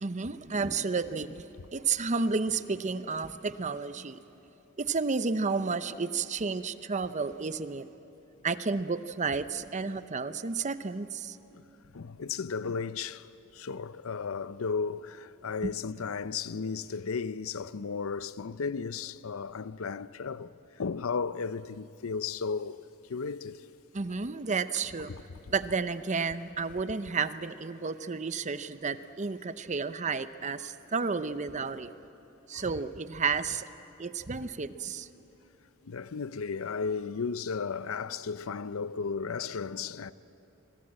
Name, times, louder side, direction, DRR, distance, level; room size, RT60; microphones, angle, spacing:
voice 1, 0.0-4.2 4.8-7.9 8.4-11.4 15.6-15.7 23.9-25.1 25.5-31.9 32.5-33.7 34.0-35.1, right 4 dB, 35° right, 0.7 m, -31 dB
voice 2, 11.9-22.8 23.1-23.7 25.1-25.2 32.5-32.7 35.1-35.2 35.8-40.1, left 5 dB, 90° left, 0.6 m, -34 dB
25.5 x 22.0 x 8.8 m
head